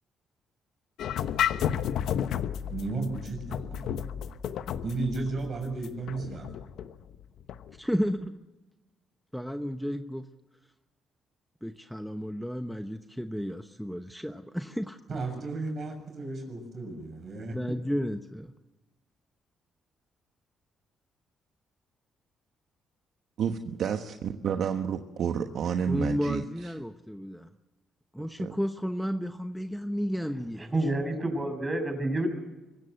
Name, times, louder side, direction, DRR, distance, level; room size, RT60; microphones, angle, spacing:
sound 1, 1.0-7.7, left 9 dB, 75° left, 1.0 m, -32 dB
voice 1, 2.7-4.0 4.8-6.5 15.1-17.8, right 3 dB, 50° right, 4 dB, 6.9 m, -34 dB
voice 2, 7.8-8.4 9.3-10.3 11.6-15.0 17.5-18.5 25.9-27.5 28.1-30.9, equal, ahead, 7 dB, 1.0 m, -32 dB
voice 3, 23.4-26.4 28.2-28.5, right 7 dB, 70° right, 6 dB, 1.2 m, -30 dB
voice 4, 30.7-32.3, right 1 dB, 20° right, 5 dB, 6.5 m, -28 dB
24.5 x 16.0 x 8.0 m, 1.1 s
cardioid pair, 90°, 0 cm